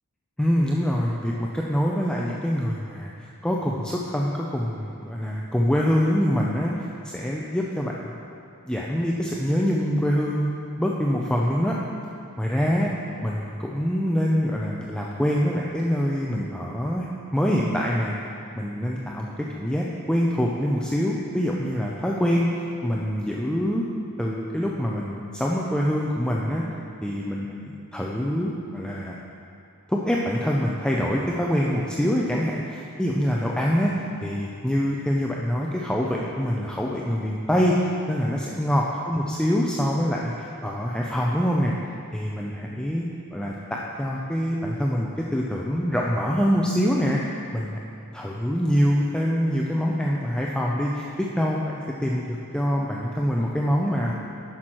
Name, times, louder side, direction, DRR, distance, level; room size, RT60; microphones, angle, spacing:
voice 1, 0.4-8.1 8.6-10.5 10.8-11.8 12.4-12.9 13.2-17.1 17.3-18.1 18.6-23.9 24.2-26.6 27.0-29.2 29.9-41.7 42.1-43.1 43.3-47.2 47.5-47.8 48.1-54.1, equal, 5° left, -3 dB, 0.5 m, -25 dB
10.5 x 6.2 x 4.4 m, 2.6 s
head